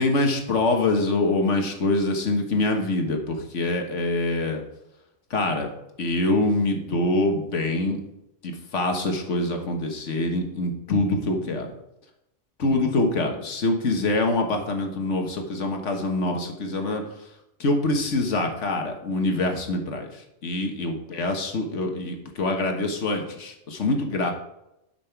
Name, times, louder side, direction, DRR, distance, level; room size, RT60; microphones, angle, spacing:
voice 1, 0.0-4.6 5.3-5.7 6.0-8.0 8.4-11.7 12.6-17.3 17.6-24.3, left 2 dB, 90° left, 4 dB, 1.7 m, -25 dB
10.5 x 6.1 x 4.6 m, 0.87 s
omnidirectional pair, 1.2 m